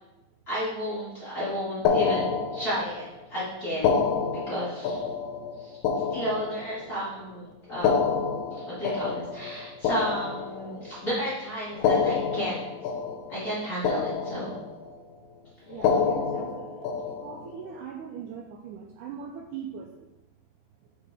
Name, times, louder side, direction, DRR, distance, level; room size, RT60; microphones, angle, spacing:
voice 1, 0.5-3.0 3.3-5.0 5.6-5.8 6.1-7.4 7.7-8.2 8.5-12.6 13.3-14.6 15.8-15.9, equal, 30° left, -10 dB, 1.8 m, -32 dB
sound 1, 1.9-3.1 3.7-7.0 7.7-11.0 11.7-13.6 13.8-14.9 15.7-17.5, left 5 dB, 80° left, 2.2 m, -28 dB
voice 2, 15.7-16.9 17.2-19.9, right 7 dB, 90° right, 1 dB, 1.7 m, -40 dB
6.8 x 4.5 x 3.5 m, 0.98 s
omnidirectional pair, 4.0 m